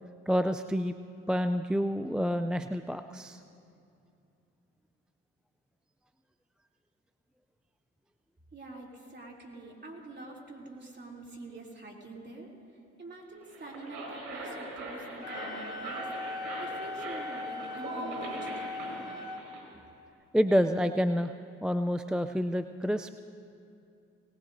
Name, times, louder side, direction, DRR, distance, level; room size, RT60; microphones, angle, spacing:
voice 1, 0.3-0.9 1.3-3.4 20.3-21.3 21.6-23.1, equal, 5° right, 9 dB, 0.4 m, -28 dB
voice 2, 8.5-12.5 13.0-16.0 16.6-18.7, right 2 dB, 35° right, -2 dB, 3.0 m, -45 dB
sound 1, 13.4-19.6, right 2 dB, 85° right, 4.0 m, -41 dB
Wind instrument woodwind instrument, 15.2-19.4, left 2 dB, 60° left, 1.4 m, -39 dB
21.0 x 18.5 x 2.7 m, 2.6 s
supercardioid pair, 65°, 30 cm